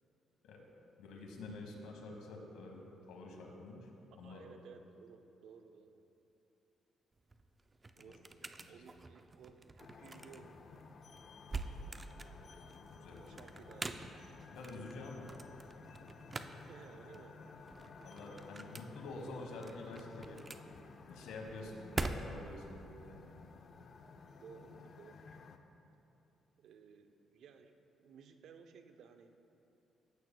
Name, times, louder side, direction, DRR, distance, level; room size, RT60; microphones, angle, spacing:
voice 1, 1.0-3.9 4.2-4.4 8.6-8.8 12.9-13.4 14.5-15.3 18.0-20.4 21.1-22.8 23.1-23.5, left 2 dB, 90° left, 1 dB, 1.3 m, -48 dB
voice 2, 4.2-6.0 8.0-8.2 8.7-10.5 13.3-14.2 14.7-14.9 16.7-17.4 24.1-25.4 26.6-27.7 28.0-29.4, right 6 dB, 75° right, 7 dB, 0.6 m, -57 dB
sound 1, 7.1-22.6, right 3 dB, 25° right, 0.4 m, -46 dB
sound 2, 9.8-25.6, left 4 dB, 55° left, 0.5 m, -55 dB
14.5 x 8.5 x 2.2 m, 2.9 s
cardioid pair, 90°, 0 cm